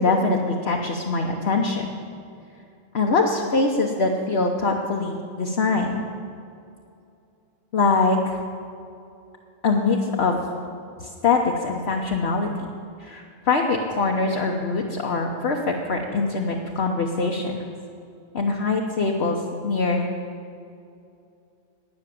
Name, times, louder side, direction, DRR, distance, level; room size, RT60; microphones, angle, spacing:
voice 1, 0.0-1.9 2.9-6.0 7.7-8.4 9.6-10.4 11.0-12.7 13.0-17.6 18.3-20.0, left 3 dB, 60° left, 0 dB, 1.2 m, -23 dB
18.5 x 6.5 x 9.2 m, 2.5 s
omnidirectional pair, 1.3 m